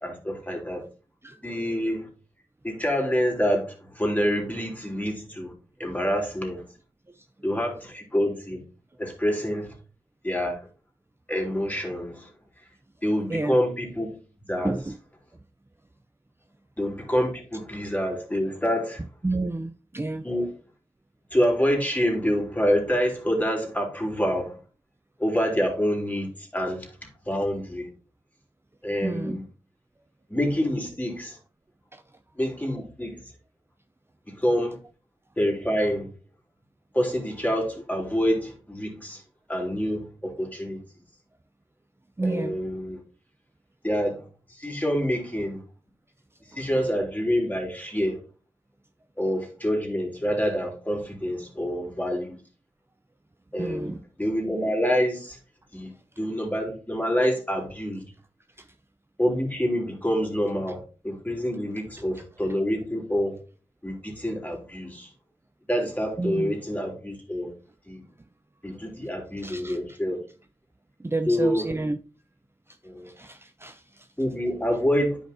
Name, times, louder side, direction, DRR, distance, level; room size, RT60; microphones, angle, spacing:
voice 1, 0.0-0.8 1.4-2.1 2.6-5.5 5.8-6.6 7.4-8.6 9.0-9.7 10.2-10.6 11.3-12.3 13.0-14.2 14.5-14.8 16.8-19.0 20.2-20.5 21.3-24.5 25.2-26.9 27.3-27.9 28.8-29.4 30.3-31.4 32.4-33.2 34.3-34.8 35.4-36.1 36.9-39.2 39.5-40.8 42.2-43.0 43.8-44.2 44.5-45.6 46.6-48.2 49.2-52.4 53.5-53.9 54.2-55.4 55.7-55.9 56.2-58.0 59.2-63.4 63.8-65.1 65.7-67.5 67.9-68.0 68.6-70.2 71.3-71.7 72.8-73.1 74.2-75.2, equal, 15° left, 3.4 m, -27 dB
voice 2, 14.6-14.9 19.2-20.3 29.0-29.4 31.9-32.0 42.2-42.6 53.6-54.0 58.6-58.7 62.1-62.2 66.2-66.5 69.4-70.0 71.0-72.0 73.1-74.1, right 2 dB, 20° right, 0.6 m, -30 dB
9.8 x 5.6 x 2.8 m
cardioid pair, 50°, 11 cm